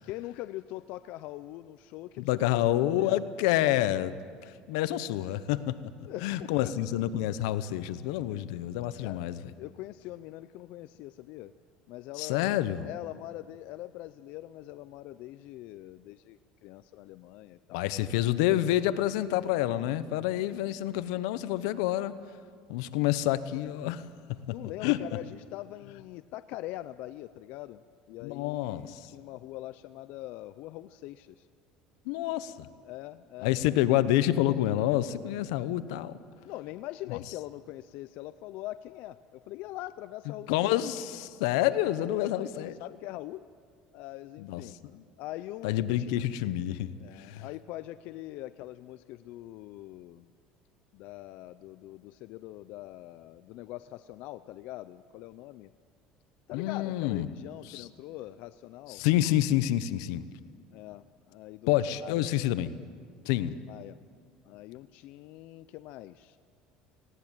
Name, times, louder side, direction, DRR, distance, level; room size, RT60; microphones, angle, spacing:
voice 1, 0.0-2.5 3.0-3.2 6.1-6.8 9.0-9.3 9.6-11.5 11.9-17.9 24.5-27.8 28.1-31.5 32.8-33.5 36.4-40.7 41.6-41.7 42.0-43.5 43.9-44.8 45.2-46.2 47.0-50.3 50.9-55.7 56.5-59.0 60.7-61.7 62.0-62.3 63.7-64.0 64.4-66.4, left 15 dB, 65° left, 13 dB, 0.5 m, -43 dB
voice 2, 2.2-4.1 4.7-5.8 6.2-9.4 12.2-12.9 17.7-22.1 22.7-24.0 24.8-25.0 28.2-29.1 32.1-32.7 33.4-36.1 37.1-37.2 40.5-42.7 44.4-44.6 44.9-45.0 45.6-46.9 47.2-47.5 56.5-57.3 57.7-57.9 58.9-60.2 61.7-62.7 63.3-63.6, left 13 dB, 90° left, 14 dB, 0.9 m, -28 dB
19.0 x 17.5 x 8.9 m, 2.1 s
cardioid pair, 125°, 3 cm